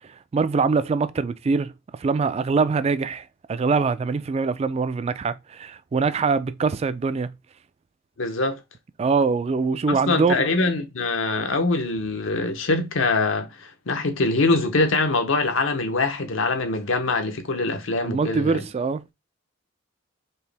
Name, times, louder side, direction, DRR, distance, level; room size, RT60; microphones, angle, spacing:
voice 1, 0.3-7.3 9.0-10.5 18.0-19.0, right 4 dB, 30° right, 0.3 m, -23 dB
voice 2, 8.2-8.6 9.9-18.6, left 3 dB, 80° left, 0.9 m, -23 dB
4.5 x 2.9 x 3.3 m
head